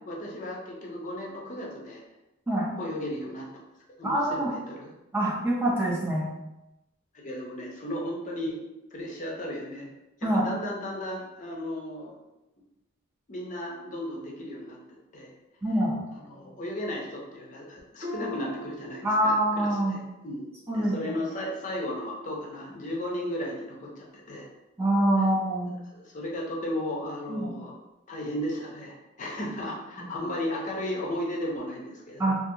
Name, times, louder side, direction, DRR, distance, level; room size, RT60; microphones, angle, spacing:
voice 1, 0.1-2.0 2.7-3.5 4.0-4.9 7.2-8.5 8.9-9.9 10.3-12.1 13.3-15.3 16.1-24.5 25.2-25.3 25.9-27.7 28.1-32.3, left 1 dB, 35° left, -2 dB, 0.5 m, -35 dB
voice 2, 4.0-4.5 5.1-6.3 10.2-10.5 15.6-16.0 18.2-18.3 19.0-20.0 20.7-21.1 24.8-25.7 27.3-27.5 32.2-32.3, right 1 dB, 10° right, -5 dB, 0.4 m, -25 dB
Harp, 18.0-19.8 20.1-20.6 21.1-21.2, left 1 dB, 35° right, 0.8 m, -41 dB
2.6 x 2.5 x 2.7 m, 0.95 s
head